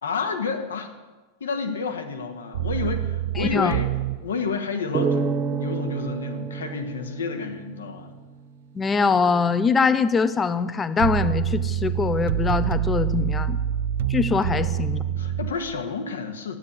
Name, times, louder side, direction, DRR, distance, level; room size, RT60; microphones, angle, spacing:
voice 1, 0.0-0.9 1.4-8.1 14.5-14.7 15.2-16.6, left 5 dB, 65° left, 6 dB, 1.7 m, -30 dB
sound 1, 2.5-4.2 11.0-15.5, right 10 dB, 55° right, 0.6 m, -26 dB
voice 2, 3.4-3.7 8.7-13.6 14.1-15.0, left 5 dB, 15° left, 13 dB, 0.8 m, -23 dB
sound 2, 4.9-8.3, right 5 dB, 25° right, 1.2 m, -29 dB
12.5 x 9.7 x 8.3 m, 1.2 s
figure-of-eight pair, 90°, 0 cm